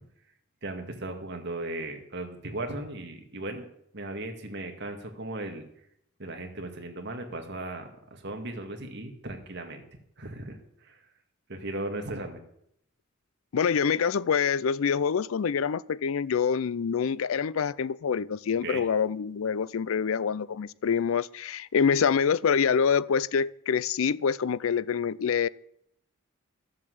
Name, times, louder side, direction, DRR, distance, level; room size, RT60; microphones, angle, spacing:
voice 1, 0.6-3.6 3.9-5.7 6.2-9.8 10.2-11.0 11.5-12.4 18.6-18.8, right 2 dB, 55° right, 2.1 m, -37 dB
voice 2, 13.5-25.5, left 6 dB, 75° left, 0.4 m, -26 dB
13.5 x 7.6 x 7.8 m
head